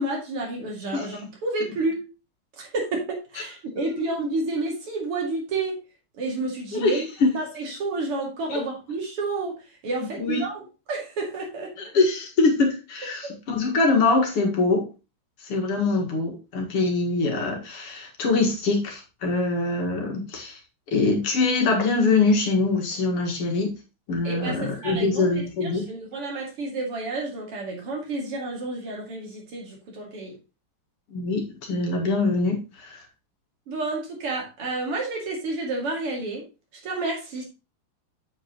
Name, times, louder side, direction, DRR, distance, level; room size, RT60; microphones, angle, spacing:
voice 1, 0.0-2.0 2.6-5.8 6.2-7.1 7.3-9.5 9.8-10.6 10.9-11.7 13.2-13.3 24.2-30.3 33.7-36.4 36.8-37.4, right 2 dB, 80° right, -1 dB, 3.5 m, -30 dB
voice 2, 6.7-7.3 8.5-8.6 10.0-10.5 11.8-14.9 15.4-20.6 20.9-23.7 24.1-25.9 31.1-33.0, left 3 dB, 90° left, 0 dB, 2.9 m, -24 dB
8.1 x 8.0 x 3.1 m, 0.29 s
omnidirectional pair, 2.4 m